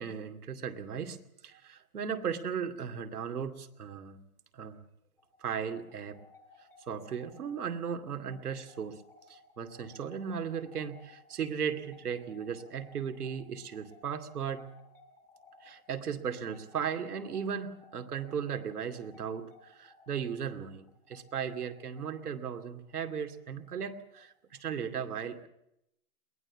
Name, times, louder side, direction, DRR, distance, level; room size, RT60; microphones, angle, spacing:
voice 1, 0.0-4.2 4.5-4.8 5.4-6.2 6.9-9.0 9.3-14.7 15.6-25.5, right 7 dB, 80° right, 7 dB, 2.6 m, -36 dB
sound 1, 5.2-24.6, left 3 dB, 5° left, 1.4 m, -60 dB
22.5 x 18.0 x 7.3 m, 0.79 s
hypercardioid pair, 165°, 44 cm